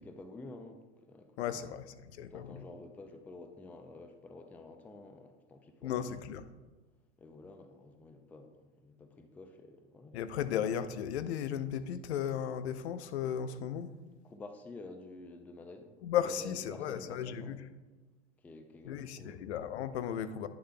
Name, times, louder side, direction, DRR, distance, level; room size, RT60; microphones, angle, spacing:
voice 1, 0.0-1.7 2.3-6.2 7.2-10.2 10.4-10.5 14.2-15.9 16.2-17.6 18.4-19.4, left 2 dB, 5° left, 0.3 m, -50 dB
voice 2, 1.4-1.8 2.2-2.6 5.8-6.4 10.1-13.9 16.0-17.6 18.8-20.5, left 9 dB, 70° left, 0.6 m, -35 dB
9.6 x 6.5 x 2.2 m
hypercardioid pair, 95°, 34 cm